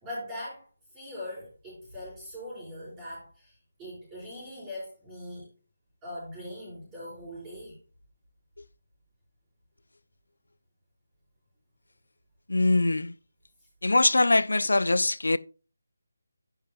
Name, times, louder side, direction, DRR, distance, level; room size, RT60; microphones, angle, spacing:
voice 1, 0.0-0.6 0.9-5.5 6.0-7.8, left 1 dB, 15° right, 5.4 m, -41 dB
voice 2, 12.5-13.1 13.8-15.4, left 2 dB, 70° left, 0.4 m, -23 dB
10.5 x 9.3 x 2.3 m
figure-of-eight pair, 155°, 0 cm